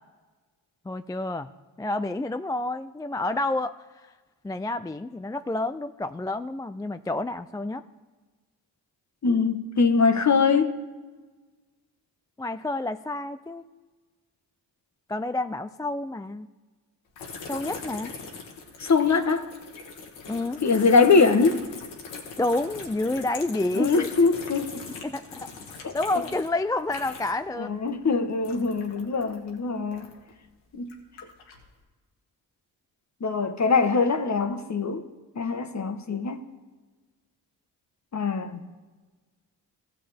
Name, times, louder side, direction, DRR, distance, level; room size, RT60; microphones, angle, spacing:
voice 1, 0.9-1.5 1.8-3.7 4.4-7.8 12.4-13.6 15.1-16.5 17.4-18.1 20.3-20.6 22.4-24.1 25.0-25.5 25.8-27.7, left 2 dB, 10° left, 0.3 m, -29 dB
voice 2, 9.2-10.7 18.8-19.5 20.6-21.6 23.8-24.9 25.8-26.0 27.5-30.1 30.7-30.9 33.2-35.0 35.3-36.5 38.1-38.6, left 4 dB, 40° left, 1.2 m, -22 dB
sound 1, 17.2-27.5 27.8-30.3 30.8-31.7, left 4 dB, 90° left, 1.5 m, -41 dB
15.5 x 7.4 x 3.5 m
supercardioid pair, 45°, 45 cm